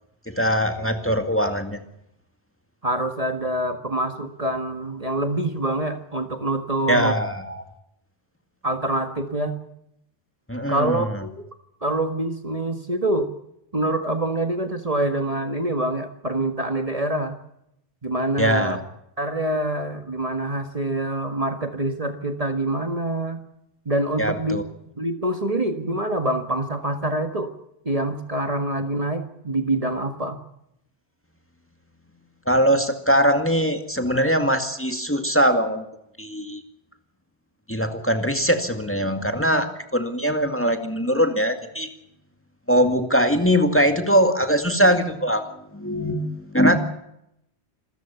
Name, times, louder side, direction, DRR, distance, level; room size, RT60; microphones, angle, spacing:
voice 1, 0.3-1.8 6.9-7.7 10.5-11.2 18.4-18.8 24.2-24.6 32.5-35.8 36.2-36.6 37.7-39.7 39.9-41.9 42.7-46.8, equal, 10° left, 6 dB, 2.1 m, -21 dB
voice 2, 2.8-7.2 8.6-9.6 10.7-11.4 11.8-13.3 13.7-17.4 18.0-18.8 19.2-23.4 23.9-24.6 25.0-27.5 27.9-30.4, right 1 dB, 35° right, 7 dB, 1.8 m, -25 dB
26.5 x 14.5 x 7.1 m, 0.79 s
omnidirectional pair, 1.1 m